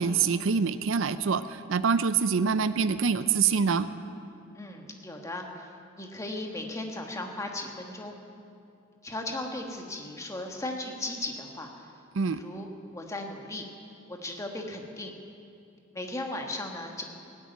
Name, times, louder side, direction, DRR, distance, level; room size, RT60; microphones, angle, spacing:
voice 1, 0.0-3.9 12.2-12.4, right 5 dB, 65° right, 13 dB, 0.5 m, -25 dB
voice 2, 4.5-8.2 9.0-11.8 12.2-13.6 14.1-15.1 15.9-17.0, left 2 dB, 15° left, 2 dB, 1.5 m, -37 dB
18.0 x 8.4 x 9.3 m, 2.5 s
head